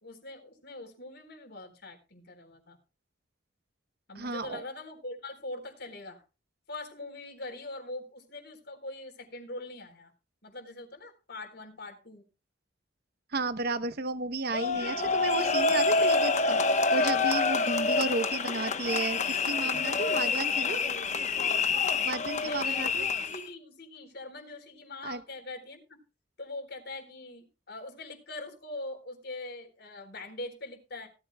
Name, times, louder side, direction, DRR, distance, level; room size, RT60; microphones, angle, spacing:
voice 1, 0.0-2.8 4.1-6.2 6.7-10.1 10.4-12.2 22.4-26.0 26.4-31.1, left 2 dB, 55° left, 5 dB, 4.0 m, -42 dB
voice 2, 4.1-4.6 13.3-16.6 16.9-20.8 22.0-23.1 25.0-25.2, right 3 dB, 55° right, 11 dB, 0.9 m, -33 dB
sound 1, 14.5-23.5, left 4 dB, 40° left, 1.0 m, -27 dB
18.0 x 13.5 x 2.2 m, 0.31 s
head